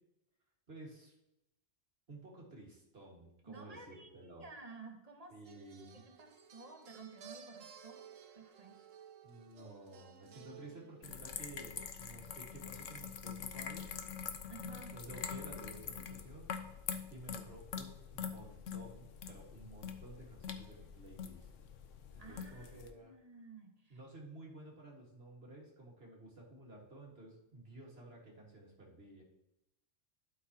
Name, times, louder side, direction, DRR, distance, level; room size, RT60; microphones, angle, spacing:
voice 1, 0.7-1.1 2.1-4.5 5.3-6.0 9.2-13.9 14.6-16.5 17.1-21.5 22.1-23.1 23.9-29.2, right 2 dB, 50° right, -2 dB, 1.9 m, -53 dB
voice 2, 3.5-5.4 5.9-8.1 8.3-8.8 14.5-14.9 22.2-24.0, right 3 dB, 30° right, 3 dB, 1.1 m, -53 dB
sound 1, 5.4-11.5 13.5-13.7, right 7 dB, 80° right, 1.2 m, -56 dB
sound 2, 11.0-22.9, left 7 dB, 75° left, 1.1 m, -45 dB
12.0 x 5.5 x 2.8 m, 0.86 s
omnidirectional pair, 1.3 m